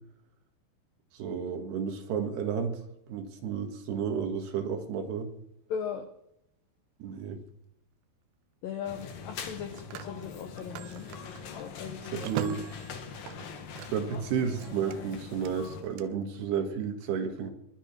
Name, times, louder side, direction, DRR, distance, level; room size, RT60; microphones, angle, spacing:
voice 1, 1.1-2.8 3.1-5.3 7.0-7.4 12.1-12.7 13.9-17.5, right 7 dB, 65° right, 5 dB, 3.5 m, -32 dB
voice 2, 5.7-6.1 8.6-11.1 11.6-12.3, left 7 dB, 75° left, 6 dB, 2.1 m, -38 dB
Telephone, 7.1-7.4 9.3-14.2 14.5-16.0, right 12 dB, 85° right, 3.2 m, -42 dB
sound 1, 8.8-15.8, left 5 dB, 55° left, 2.8 m, -43 dB
23.0 x 8.8 x 6.0 m, 0.78 s
omnidirectional pair, 5.4 m